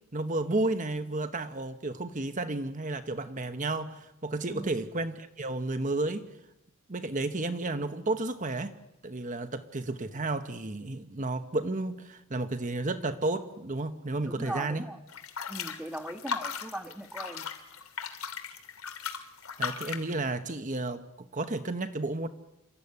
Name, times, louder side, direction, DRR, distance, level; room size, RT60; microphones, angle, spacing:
voice 1, 0.1-6.3 6.9-8.7 9.0-14.8 19.6-21.0 21.3-22.3, right 2 dB, 35° right, 9 dB, 1.0 m, -32 dB
voice 2, 4.5-4.8 14.2-15.0 15.5-17.4, right 1 dB, 5° right, 8 dB, 1.4 m, -39 dB
sound 1, 15.1-20.1, left 6 dB, 85° left, 2.6 m, -37 dB
27.0 x 14.5 x 9.7 m, 0.91 s
head